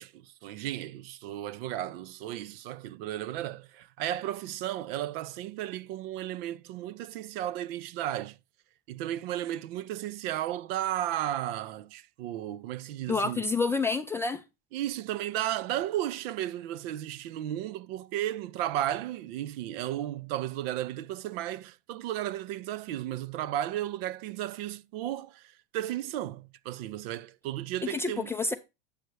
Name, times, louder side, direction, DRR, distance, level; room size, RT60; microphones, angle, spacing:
voice 1, 0.0-8.4 8.9-13.4 14.7-28.3, right 12 dB, 60° right, 0.5 m, -34 dB
voice 2, 13.1-14.4 27.9-28.5, left 4 dB, 10° left, 0.3 m, -28 dB
8.1 x 6.5 x 3.1 m
supercardioid pair, 140°, 34 cm